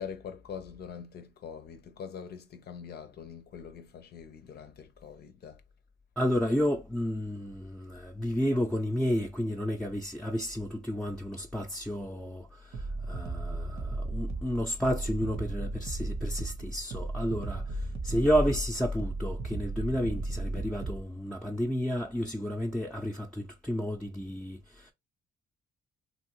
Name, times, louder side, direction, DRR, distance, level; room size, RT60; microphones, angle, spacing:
voice 1, 0.0-5.6, left 7 dB, 55° left, 0.6 m, -43 dB
voice 2, 6.2-24.9, equal, 5° left, 0.6 m, -31 dB
sound 1, 12.7-21.1, right 2 dB, 60° right, 0.9 m, -35 dB
3.0 x 2.5 x 2.9 m
supercardioid pair, 65°, 19 cm